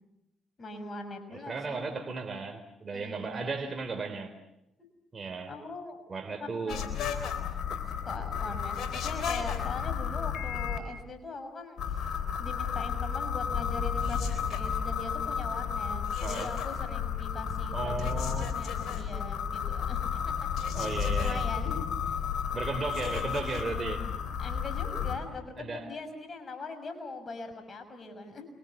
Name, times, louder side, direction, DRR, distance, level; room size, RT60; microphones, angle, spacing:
voice 1, 0.6-1.8 2.9-3.3 4.8-4.9 5.5-6.0 6.3-7.1 8.0-12.1 12.4-20.5 20.8-20.9 21.2-22.2 24.4-28.5, left 3 dB, 40° left, 7 dB, 6.3 m, -41 dB
voice 2, 1.3-4.3 5.1-5.5 6.1-6.9 7.7-7.8 16.2-16.5 17.7-18.5 20.7-21.5 22.5-24.1 25.6-25.9, right 4 dB, 40° right, 5 dB, 3.6 m, -35 dB
sound 1, 6.7-10.8 11.8-25.2, left 7 dB, 65° left, 3.7 m, -32 dB
29.0 x 24.0 x 7.2 m, 0.90 s
hypercardioid pair, 50°, 0 cm